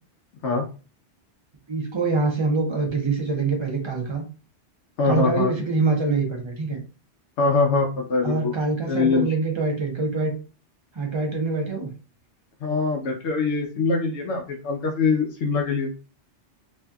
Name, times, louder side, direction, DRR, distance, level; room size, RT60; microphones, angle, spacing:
voice 1, 1.7-4.2 5.0-6.8 8.2-10.3 10.9-11.9, right 3 dB, 50° right, 1 dB, 0.3 m, -25 dB
voice 2, 5.0-5.5 7.4-8.5 8.9-9.3 12.6-15.9, left 4 dB, 75° left, 1 dB, 0.8 m, -23 dB
2.6 x 2.5 x 2.3 m, 0.35 s
omnidirectional pair, 1.2 m